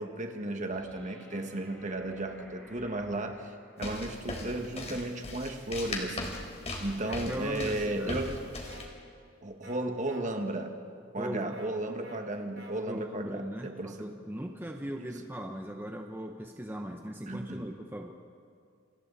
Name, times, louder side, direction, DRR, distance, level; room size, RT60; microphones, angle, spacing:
voice 1, 0.0-6.4 6.8-8.4 9.4-10.7 11.1-14.1 17.3-17.7, right 1 dB, 40° right, 4 dB, 1.8 m, -34 dB
sound 1, 0.7-4.0 6.7-6.8, equal, 5° left, 5.3 m, -54 dB
sound 2, 3.8-8.9, left 2 dB, 35° left, 3.7 m, -38 dB
voice 2, 7.0-8.2 11.2-11.6 12.8-18.2, equal, 10° right, 3 dB, 1.0 m, -39 dB
sound 3, 8.7-8.8 9.6-9.8 10.1-10.2 11.5-11.7 12.0-12.2 12.6-12.7, right 2 dB, 60° right, 4.1 m, -49 dB
28.5 x 27.0 x 4.2 m, 2.4 s
head